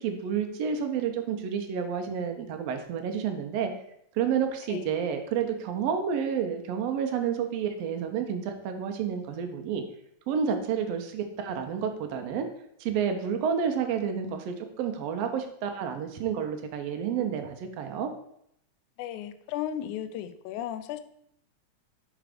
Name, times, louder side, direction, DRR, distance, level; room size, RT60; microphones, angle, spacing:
voice 1, 0.0-3.7 4.1-9.8 10.3-12.5 12.8-18.1, right 7 dB, 75° right, 5 dB, 1.5 m, -30 dB
voice 2, 19.0-21.0, left 11 dB, 80° left, 11 dB, 1.9 m, -35 dB
5.0 x 4.5 x 4.9 m, 0.73 s
omnidirectional pair, 3.5 m